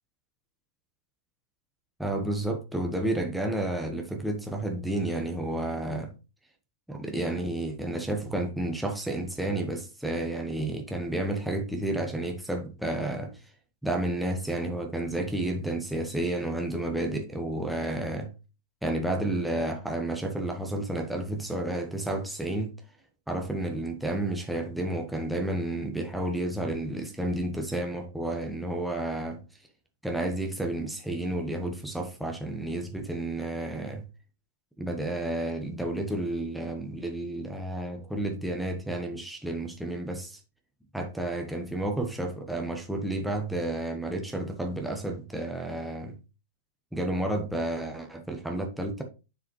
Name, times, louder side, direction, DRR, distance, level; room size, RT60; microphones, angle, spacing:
voice 1, 2.0-6.1 6.9-13.5 13.8-18.3 18.8-22.7 23.3-29.4 30.0-34.0 34.8-40.4 40.9-46.1 46.9-49.0, right 1 dB, ahead, 1.2 m, -31 dB
9.8 x 4.9 x 3.2 m
hypercardioid pair, 115°, 0 cm